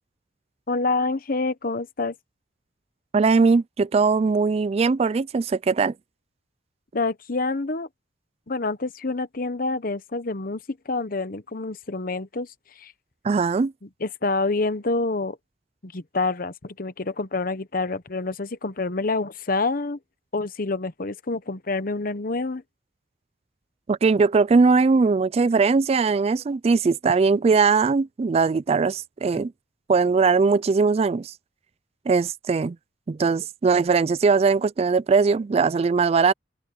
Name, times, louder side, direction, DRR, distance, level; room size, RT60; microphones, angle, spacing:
voice 1, 0.7-2.1 6.9-7.9 8.5-10.6 10.9-12.5 12.8-12.9 14.0-15.4 15.8-20.0 20.3-22.6, left 3 dB, 50° left, 1.0 m, -27 dB
voice 2, 3.1-5.9 13.2-13.7 23.9-29.5 29.9-31.3 32.1-32.8 33.1-36.3, right 4 dB, 35° right, 0.3 m, -20 dB
head